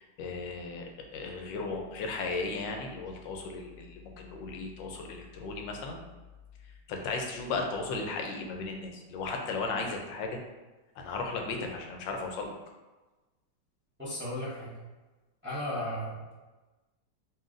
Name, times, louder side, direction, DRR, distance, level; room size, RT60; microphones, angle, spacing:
voice 1, 0.0-6.0 6.6-10.4 11.0-12.5, left 3 dB, 90° left, 2 dB, 1.4 m, -36 dB
voice 2, 14.0-14.8 15.4-16.3, left 1 dB, 10° right, -9 dB, 0.6 m, -35 dB
5.7 x 2.6 x 2.5 m, 1.2 s
omnidirectional pair, 1.9 m